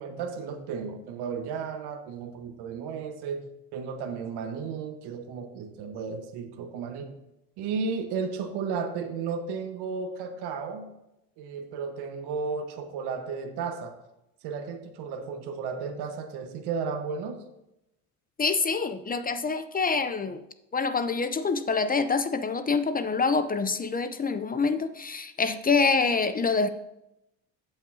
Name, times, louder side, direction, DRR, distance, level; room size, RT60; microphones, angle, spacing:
voice 1, 0.0-7.1 7.6-10.9 11.4-14.0 14.4-17.4, right 5 dB, 65° right, 4 dB, 1.3 m, -34 dB
voice 2, 18.4-20.4 20.7-26.7, left 4 dB, 20° left, 11 dB, 0.6 m, -26 dB
16.0 x 5.6 x 2.8 m, 0.88 s
supercardioid pair, 80°, 42 cm